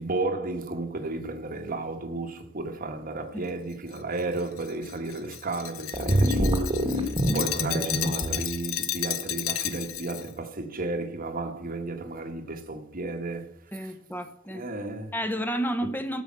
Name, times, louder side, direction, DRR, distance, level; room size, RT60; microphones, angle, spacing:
voice 1, 0.0-13.9 14.5-15.1, right 2 dB, 45° right, 1.3 m, -33 dB
Glass, 3.9-10.3, left 12 dB, 90° left, 0.7 m, -33 dB
sound 1, 5.9-8.4, equal, 25° right, 1.4 m, -25 dB
voice 2, 13.7-14.7 15.1-16.2, equal, 10° left, 1.0 m, -31 dB
13.5 x 5.2 x 7.3 m
head